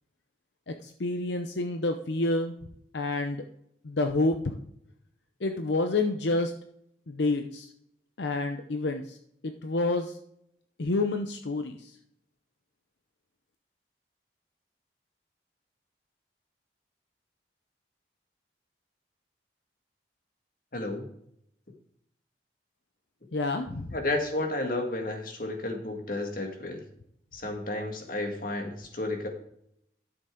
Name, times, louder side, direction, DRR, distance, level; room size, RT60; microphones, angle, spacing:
voice 1, 0.7-2.5 2.9-3.4 3.8-4.4 5.4-6.5 7.1-7.7 8.2-9.2 9.4-10.1 10.8-11.9 23.3-23.9, left 2 dB, 80° left, 6 dB, 0.7 m, -28 dB
voice 2, 20.7-21.1 23.9-26.8 27.3-29.3, left 2 dB, 50° left, 3 dB, 2.0 m, -32 dB
12.5 x 6.9 x 3.8 m, 0.71 s
head